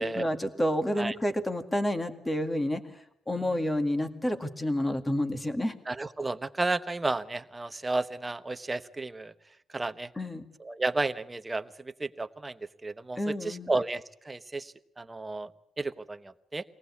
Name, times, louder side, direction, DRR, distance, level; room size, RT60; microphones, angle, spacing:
voice 1, 0.0-2.8 3.3-5.7 10.2-10.4 13.2-13.7, left 1 dB, 10° left, 8 dB, 2.0 m, -29 dB
voice 2, 5.9-9.3 9.7-10.1 10.6-15.5 15.8-16.6, right 2 dB, 15° right, 10 dB, 1.1 m, -32 dB
24.0 x 18.5 x 8.5 m, 0.74 s
cardioid pair, 130°, 0 cm